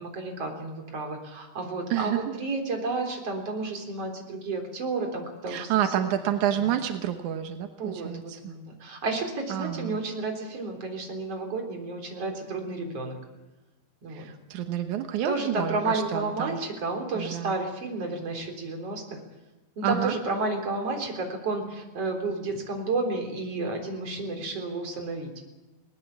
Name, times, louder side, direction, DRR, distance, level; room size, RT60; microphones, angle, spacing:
voice 1, 0.0-6.1 7.8-13.2 14.0-14.3 15.2-19.2 19.8-25.3, right 3 dB, 35° right, 3 dB, 4.4 m, -31 dB
voice 2, 1.9-2.3 5.5-8.4 9.5-10.0 14.1-16.6 17.1-17.5 19.8-20.1, right 11 dB, 75° right, 7 dB, 1.8 m, -29 dB
21.0 x 19.5 x 7.3 m, 1.1 s
omnidirectional pair, 5.0 m